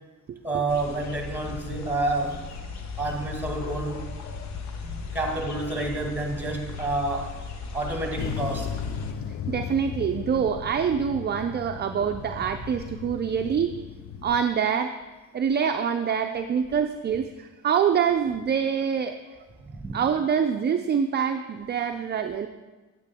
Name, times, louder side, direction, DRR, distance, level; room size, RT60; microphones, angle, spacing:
voice 1, 0.4-2.5 3.0-4.0 4.8-7.3 7.7-8.7 19.6-20.0, right 2 dB, 5° right, 1 dB, 1.9 m, -29 dB
sound 1, 0.7-9.1, left 4 dB, 65° left, 1.0 m, -37 dB
sound 2, 8.2-14.4, left 9 dB, 50° left, 0.4 m, -36 dB
voice 2, 9.5-13.7 14.2-14.9 15.3-19.2 19.9-22.5, right 7 dB, 35° right, 6 dB, 0.5 m, -25 dB
9.0 x 8.6 x 3.6 m, 1.2 s
cardioid pair, 90°, 30 cm